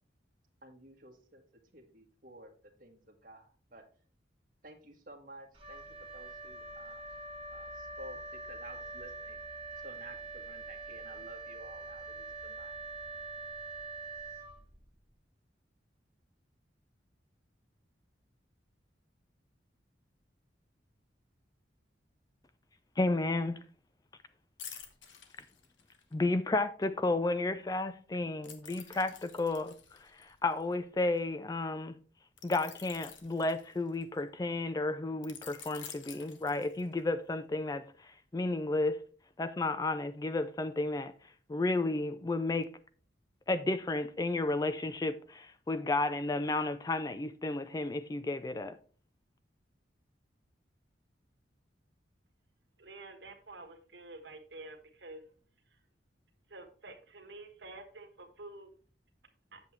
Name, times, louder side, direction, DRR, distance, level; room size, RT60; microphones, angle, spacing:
voice 1, 0.6-1.4 1.7-2.5 2.8-3.8 4.6-7.0 7.5-9.6 9.8-12.8, right 1 dB, 50° right, 1.5 m, -53 dB
Wind instrument woodwind instrument, 5.5-15.0, right 3 dB, 30° right, 1.6 m, -44 dB
voice 2, 23.0-23.6 26.1-32.0 32.4-39.0 39.4-41.1 41.5-42.7 43.5-48.8, left 2 dB, 20° left, 0.3 m, -32 dB
sound 1, 24.6-26.1 28.4-31.2 32.4-34.2 35.2-37.1 37.5-37.7, left 8 dB, 90° left, 1.1 m, -50 dB
voice 3, 52.8-55.2 55.7-55.8 56.5-58.7 59.5-59.6, right 2 dB, 70° right, 1.4 m, -49 dB
8.0 x 7.1 x 3.1 m
head